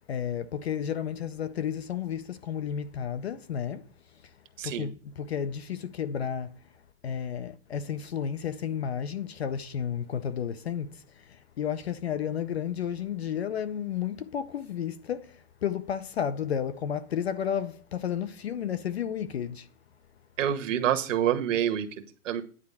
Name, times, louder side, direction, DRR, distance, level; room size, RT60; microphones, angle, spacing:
voice 1, 0.1-3.9 4.2-4.3 4.6-6.6 7.0-19.7, left 8 dB, 45° left, 0.5 m, -32 dB
voice 2, 20.4-21.9 22.2-22.4, right 10 dB, 55° right, 1.3 m, -26 dB
9.8 x 4.3 x 7.0 m
hypercardioid pair, 165°, 46 cm